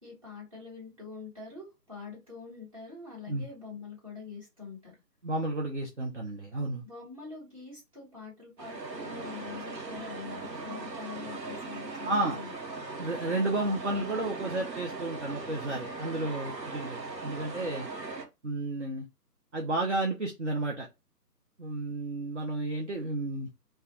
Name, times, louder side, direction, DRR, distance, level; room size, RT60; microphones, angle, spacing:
voice 1, 0.0-5.0 6.8-12.5 12.8-12.9, left 5 dB, 20° right, -4 dB, 1.1 m, -45 dB
voice 2, 5.2-6.8 12.0-12.4 13.0-17.9 18.4-19.1 19.5-20.9 21.6-23.5, right 2 dB, 50° right, 0 dB, 0.5 m, -32 dB
sound 1, 8.6-18.3, right 3 dB, 85° right, 0.9 m, -39 dB
2.2 x 2.2 x 2.7 m, 0.24 s
figure-of-eight pair, 150°, 49 cm